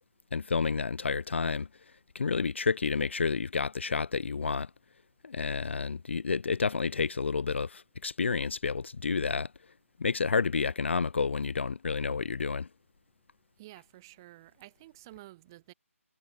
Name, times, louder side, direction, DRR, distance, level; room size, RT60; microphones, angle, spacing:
voice 1, 0.3-1.7 2.1-4.7 5.2-9.5 10.0-12.7, left 5 dB, 55° left, 0.3 m, -30 dB
voice 2, 13.6-15.7, right 17 dB, 15° right, 2.7 m, -51 dB
figure-of-eight pair, 170°, 8 cm